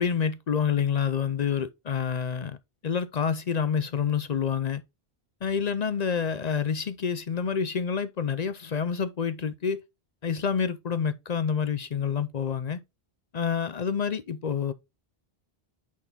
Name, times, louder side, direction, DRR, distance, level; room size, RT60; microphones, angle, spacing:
voice 1, 0.0-2.6 2.8-4.8 5.4-9.8 10.2-12.8 13.3-14.7, left 7 dB, 50° left, 0.6 m, -28 dB
8.4 x 4.1 x 3.5 m
omnidirectional pair, 1.0 m